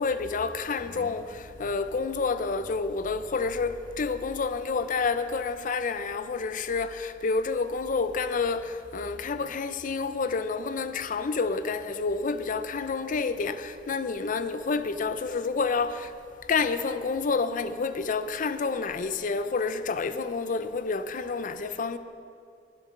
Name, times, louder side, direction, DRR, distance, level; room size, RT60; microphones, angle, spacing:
voice 1, 0.0-16.1 16.5-22.0, left 4 dB, 45° left, 0.5 m, -29 dB
21.0 x 7.5 x 3.8 m
head